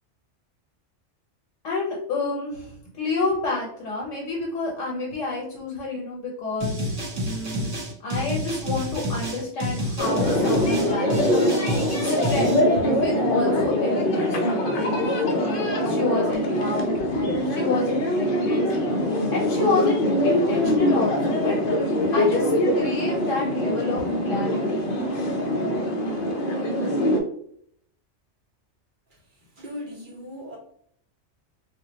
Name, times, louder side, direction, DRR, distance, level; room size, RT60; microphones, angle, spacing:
voice 1, 1.6-2.7 3.0-7.7 8.0-11.5 12.0-14.3 14.7-14.9 15.3-17.0 17.4-18.7 19.3-21.6 22.1-22.5 22.8-24.8, left 3 dB, 80° left, -3 dB, 1.1 m, -29 dB
sound 1, 6.6-12.6, equal, 80° right, 1.3 m, -29 dB
sound 2, 10.0-27.2, left 1 dB, 55° left, 0.6 m, -23 dB
voice 2, 29.6-30.6, left 1 dB, 50° right, -4 dB, 0.9 m, -37 dB
2.5 x 2.1 x 3.9 m, 0.67 s
omnidirectional pair, 1.3 m